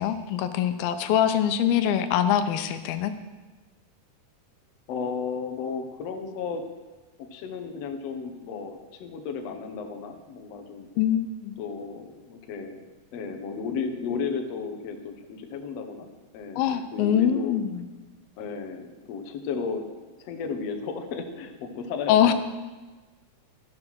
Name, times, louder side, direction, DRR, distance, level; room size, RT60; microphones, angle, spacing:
voice 1, 0.0-3.1 11.0-11.5 16.6-17.9 22.1-22.3, left 10 dB, 85° left, 10 dB, 2.6 m, -23 dB
voice 2, 4.9-6.7 7.3-10.9 11.6-16.1 16.3-17.5 18.4-22.3, left 5 dB, 65° left, 4 dB, 1.7 m, -34 dB
13.5 x 7.5 x 6.2 m, 1.3 s
omnidirectional pair, 4.2 m